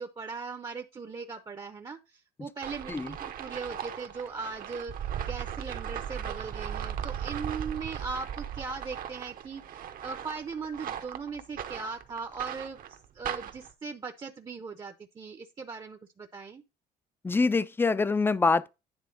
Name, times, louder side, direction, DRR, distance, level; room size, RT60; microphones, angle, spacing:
voice 1, 0.0-4.9 5.3-9.6 10.0-16.6, right 5 dB, 25° right, 0.6 m, -39 dB
sound 1, 2.6-13.7, right 9 dB, 55° right, 0.8 m, -37 dB
voice 2, 17.2-18.7, left 4 dB, 15° left, 0.4 m, -25 dB
9.7 x 3.3 x 5.0 m
cardioid pair, 110°, 17 cm